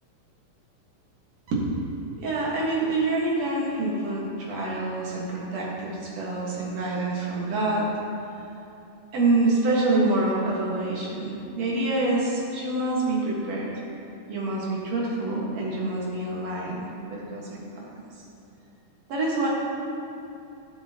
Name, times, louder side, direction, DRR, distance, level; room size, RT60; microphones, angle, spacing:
voice 1, 2.2-7.9 9.1-13.7 14.3-17.8 19.1-19.5, right 2 dB, 60° right, -4 dB, 2.6 m, -26 dB
15.0 x 6.6 x 2.9 m, 2.8 s
omnidirectional pair, 3.7 m